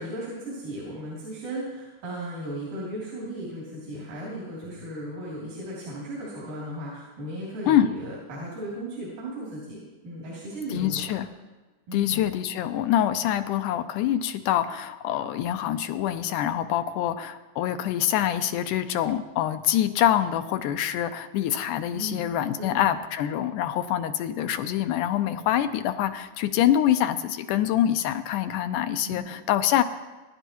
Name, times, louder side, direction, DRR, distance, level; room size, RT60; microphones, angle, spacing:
voice 1, 0.0-11.1 11.9-12.2 21.9-22.2 22.6-22.8 29.0-29.4, right 1 dB, 80° right, -6 dB, 4.9 m, -36 dB
voice 2, 10.7-11.3 11.9-29.8, left 11 dB, 80° left, 9 dB, 2.2 m, -25 dB
24.0 x 11.0 x 3.0 m, 1.2 s
omnidirectional pair, 3.8 m